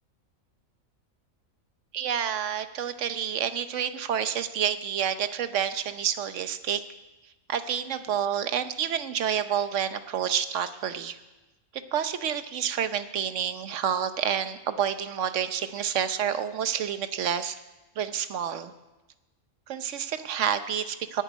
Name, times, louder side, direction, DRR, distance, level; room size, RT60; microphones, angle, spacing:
voice 1, 1.9-6.8 7.5-11.2 11.7-17.6 18.0-18.7 19.7-21.2, right 8 dB, 65° right, 11 dB, 1.1 m, -29 dB
11.5 x 9.0 x 9.1 m, 1.1 s
omnidirectional pair, 1.4 m